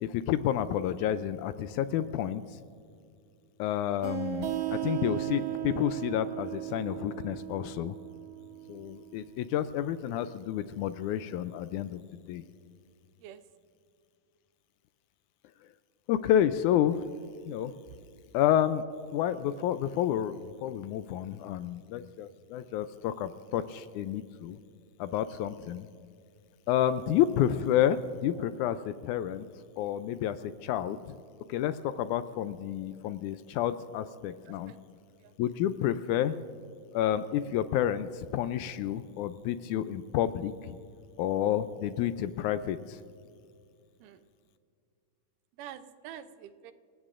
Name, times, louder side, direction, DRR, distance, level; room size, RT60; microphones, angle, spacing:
voice 1, 0.0-2.6 3.6-8.0 8.7-12.4 16.1-17.0 17.5-17.7 18.3-18.8 19.1-24.6 25.0-25.9 26.7-29.5 29.8-31.2 31.5-34.7 35.4-36.4 36.9-40.8 41.2-43.0, left 11 dB, 80° left, 12 dB, 1.8 m, -30 dB
sound 1, 4.0-9.4, right 15 dB, 65° right, 1.7 m, -36 dB
voice 2, 34.5-34.8 35.2-35.3 44.0-44.2 45.6-46.7, right 10 dB, 80° right, 11 dB, 2.2 m, -47 dB
27.5 x 17.5 x 2.5 m, 2.3 s
omnidirectional pair, 3.7 m